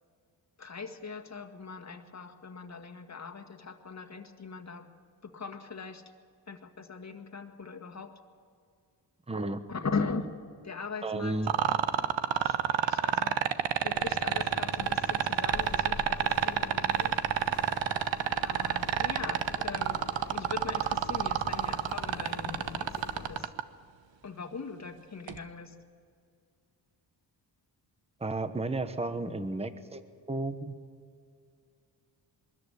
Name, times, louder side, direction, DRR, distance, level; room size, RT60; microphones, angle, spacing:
voice 1, 0.6-4.9 5.2-6.0 6.5-8.1 9.7-10.3 10.6-11.4 12.3-13.4 13.8-17.1 18.4-20.0 20.3-23.5 24.2-25.7 29.3-29.5, left 4 dB, 35° left, 5 dB, 1.9 m, -40 dB
voice 2, 9.3-9.6 11.0-11.5 28.2-30.0 30.3-30.7, right 2 dB, 15° right, 10 dB, 1.1 m, -33 dB
sound 1, 11.5-23.6 25.3-25.4, right 11 dB, 90° right, 0.9 m, -27 dB
sound 2, 13.9-23.5, left 5 dB, 55° left, 1.5 m, -44 dB
23.0 x 13.5 x 10.0 m, 2.3 s
cardioid pair, 85°, 44 cm